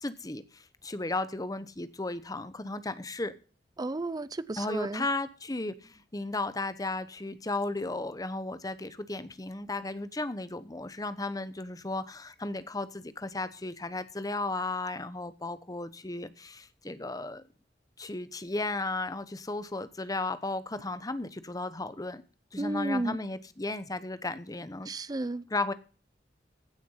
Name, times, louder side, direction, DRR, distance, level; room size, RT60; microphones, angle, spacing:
voice 1, 0.0-3.3 4.6-17.4 18.0-22.2 22.5-24.9 25.5-25.7, left 2 dB, 20° left, 0.9 m, -35 dB
voice 2, 3.8-5.1 22.6-23.2 24.9-25.4, right 2 dB, 20° right, 0.5 m, -32 dB
15.5 x 6.9 x 5.6 m
head